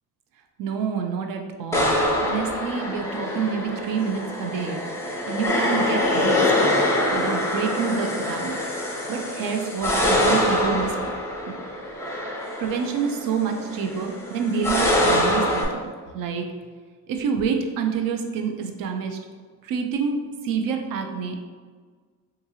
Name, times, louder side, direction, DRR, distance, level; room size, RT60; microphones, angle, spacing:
voice 1, 0.6-4.8 5.3-6.8 7.1-8.6 9.1-11.1 11.5-11.6 12.6-16.5 17.1-19.2 19.6-21.4, right 6 dB, 60° right, 4 dB, 0.5 m, -28 dB
sound 1, 1.7-15.7, left 1 dB, 10° left, 0.3 m, -24 dB
2.7 x 2.5 x 2.7 m, 1.5 s
cardioid pair, 100°, 39 cm